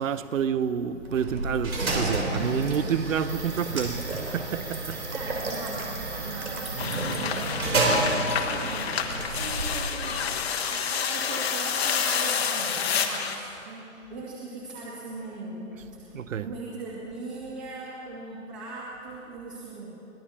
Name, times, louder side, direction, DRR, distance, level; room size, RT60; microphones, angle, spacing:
voice 1, 0.0-5.1 16.1-16.5, right 7 dB, 70° right, 0.8 m, -29 dB
sound 1, 1.0-10.3, right 2 dB, 85° right, 3.7 m, -30 dB
voice 2, 5.1-19.9, right 3 dB, 35° right, 2.4 m, -39 dB
sound 2, 6.8-13.4, left 7 dB, 50° left, 1.3 m, -29 dB
24.5 x 17.5 x 2.8 m
hypercardioid pair, 160°, 41 cm